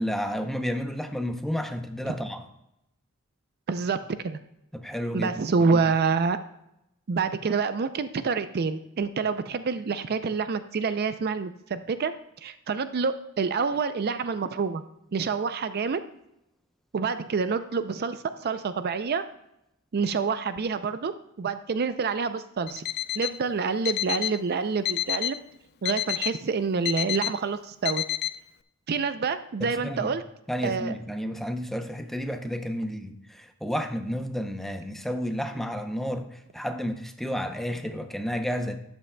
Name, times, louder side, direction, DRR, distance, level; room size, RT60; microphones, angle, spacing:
voice 1, 0.0-2.5 4.7-5.3 29.6-30.1 30.5-38.8, equal, ahead, 6 dB, 0.6 m, -31 dB
voice 2, 3.7-4.0 4.2-4.4 5.1-6.4 7.1-12.1 12.4-14.8 15.1-16.0 16.9-19.2 19.9-21.1 21.4-22.8 23.2-25.4 25.8-28.0 28.9-30.2 30.6-30.9, right 5 dB, 45° right, 11 dB, 0.4 m, -27 dB
Alarm, 22.7-23.4 23.9-24.4 24.9-25.4 25.9-26.4 26.9-27.4 27.9-28.4, left 13 dB, 50° left, 0.4 m, -29 dB
12.5 x 8.8 x 2.2 m, 0.83 s
head